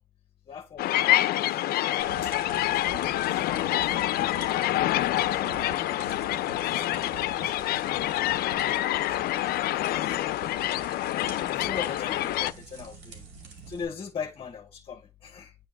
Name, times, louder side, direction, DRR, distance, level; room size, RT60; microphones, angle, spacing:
voice 1, 0.5-1.7 2.2-2.4 2.7-4.0 5.3-8.4 9.1-10.5 11.3-15.6, left 6 dB, 35° left, 0.8 m, -42 dB
sound 1, 0.8-12.5, left 15 dB, 65° left, 0.4 m, -27 dB
sound 2, 2.0-13.8, right 4 dB, 85° right, 2.4 m, -45 dB
9.2 x 3.4 x 3.8 m
cardioid pair, 110°, 17 cm